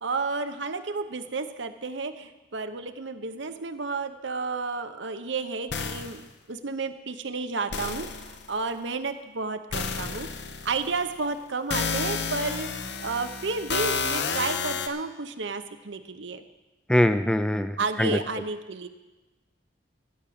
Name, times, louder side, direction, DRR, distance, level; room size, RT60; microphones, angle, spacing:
voice 1, 0.0-10.3 10.6-16.4 17.8-18.9, right 4 dB, 75° right, 9 dB, 0.9 m, -32 dB
sound 1, 5.7-6.3 7.7-8.5 9.7-11.0 11.7-14.9, left 5 dB, 65° left, 0.9 m, -31 dB
voice 2, 16.9-18.2, left 1 dB, 5° left, 10 dB, 0.4 m, -23 dB
15.5 x 6.1 x 8.6 m, 1.1 s
head